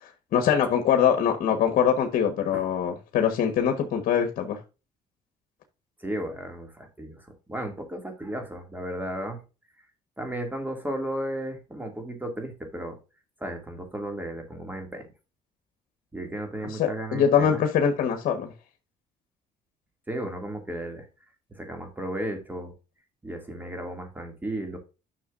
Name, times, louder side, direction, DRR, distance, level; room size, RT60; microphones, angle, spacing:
voice 1, 0.0-4.6 16.8-18.5, left 8 dB, 70° left, 4 dB, 1.3 m, -23 dB
voice 2, 6.0-9.4 10.2-13.0 13.4-15.1 16.1-17.6 20.1-21.1 21.5-22.7 23.2-24.8, right 1 dB, 10° right, 4 dB, 2.2 m, -34 dB
10.5 x 6.1 x 2.5 m, 0.30 s
cardioid pair, 110°, 15 cm